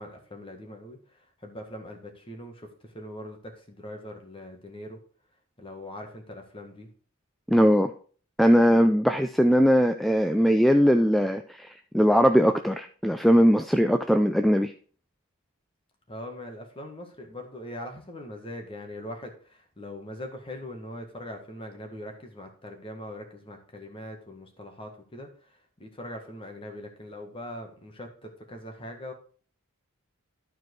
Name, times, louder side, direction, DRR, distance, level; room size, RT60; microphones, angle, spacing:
voice 1, 0.0-5.0 5.6-6.9 16.1-29.1, left 1 dB, 25° left, 3 dB, 1.7 m, -41 dB
voice 2, 7.5-7.9 8.4-14.7, equal, ahead, 7 dB, 0.3 m, -20 dB
12.0 x 4.6 x 4.6 m, 0.43 s
head